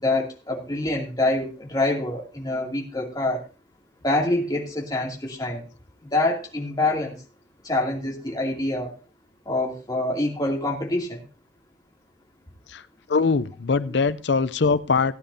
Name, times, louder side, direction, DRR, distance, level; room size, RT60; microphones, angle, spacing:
voice 1, 0.0-3.4 4.0-5.6 6.1-7.2 7.6-8.9 9.5-11.2, left 2 dB, 20° left, -2 dB, 2.6 m, -25 dB
voice 2, 13.1-15.1, left 4 dB, 65° left, 14 dB, 0.6 m, -22 dB
17.5 x 9.8 x 2.7 m, 0.32 s
head